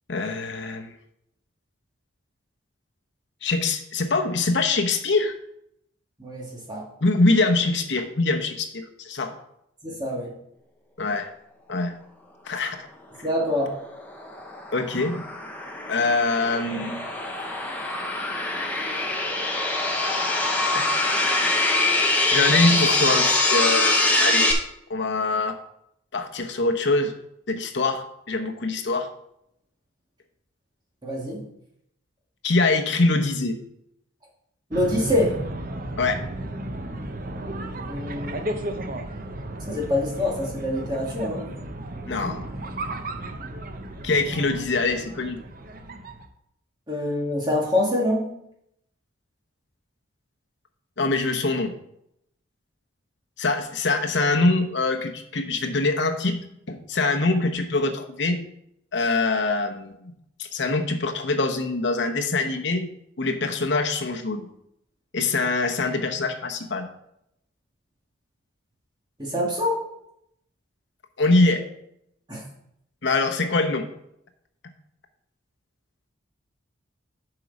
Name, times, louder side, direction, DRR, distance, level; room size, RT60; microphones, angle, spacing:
voice 1, 0.1-0.9 3.4-5.3 7.0-9.3 11.0-11.3 11.7-11.9 12.5-12.9 14.7-15.2 15.9-17.1 20.7-20.9 22.3-24.5 24.9-25.6 26.1-27.1 27.5-29.1 32.4-33.6 36.0-36.2 42.1-42.5 44.0-45.4 51.0-51.7 53.4-56.4 56.7-58.4 58.9-60.1 60.4-62.9 63.2-64.5 65.1-66.9 71.2-71.6 73.0-73.9, left 3 dB, 55° left, 4 dB, 0.9 m, -24 dB
voice 2, 6.2-6.8 9.8-10.3 13.2-13.7 31.0-31.4 34.7-35.4 37.9-38.6 39.7-41.5 46.9-48.3 69.2-69.8 72.3-72.4, left 1 dB, 20° right, -3 dB, 2.0 m, -25 dB
sound 1, 13.7-24.5, left 2 dB, 10° left, 0.8 m, -24 dB
sound 2, 34.7-46.3, right 1 dB, 45° right, 0.7 m, -34 dB
7.6 x 4.9 x 5.2 m, 0.77 s
head